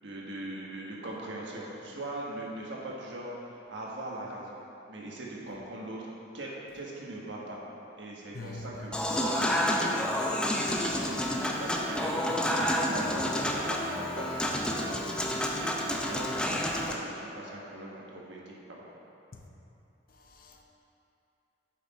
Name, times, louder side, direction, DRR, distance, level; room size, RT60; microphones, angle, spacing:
voice 1, 0.0-3.3 3.7-4.6 4.9-6.1 6.3-7.6 8.0-10.1 10.4-18.8, right 1 dB, 85° right, -3 dB, 1.4 m, -40 dB
voice 2, 8.3-8.9 19.3-19.5 20.1-20.6, left 2 dB, 50° left, 2 dB, 0.7 m, -44 dB
Human voice / Acoustic guitar / Piano, 8.9-16.9, left 1 dB, 5° left, 0.5 m, -29 dB
8.2 x 5.8 x 4.2 m, 2.8 s
head